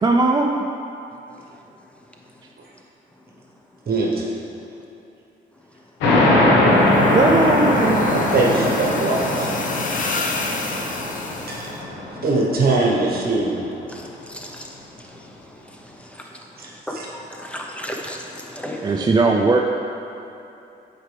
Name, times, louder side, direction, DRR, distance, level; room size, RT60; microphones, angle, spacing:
voice 1, 0.0-0.6 7.1-8.0 18.8-19.6, right 3 dB, 20° right, 1 dB, 0.4 m, -18 dB
voice 2, 3.9-4.2 8.1-9.5 11.5-11.7 12.2-13.6 16.6-17.1, right 3 dB, 50° right, -3 dB, 1.1 m, -21 dB
sound 1, 6.0-13.2, left 1 dB, 85° left, 1.2 m, -20 dB
sound 2, 6.8-11.7, left 3 dB, 40° left, 0.7 m, -31 dB
voice 3, 10.6-11.7 12.1-12.5 13.9-19.1, equal, 5° left, 0 dB, 0.8 m, -37 dB
7.8 x 4.7 x 3.4 m, 2.8 s
cardioid pair, 90°, 20 cm